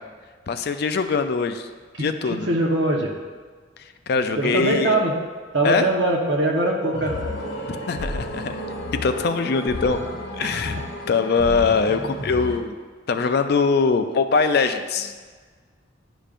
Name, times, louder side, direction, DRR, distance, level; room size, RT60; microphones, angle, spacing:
voice 1, 0.5-1.7 2.0-2.5 4.1-5.0 5.6-5.9 7.7-8.6 8.9-10.0 10.4-10.8 11.1-12.7 13.1-15.1, left 4 dB, 55° left, 9 dB, 0.4 m, -22 dB
voice 2, 2.0-3.1 4.4-5.2 5.5-7.2 10.4-10.8, right 2 dB, 65° right, 0 dB, 1.0 m, -22 dB
sound 1, 6.9-12.6, left 1 dB, 80° left, 0.9 m, -32 dB
10.0 x 5.1 x 2.5 m, 1.5 s
head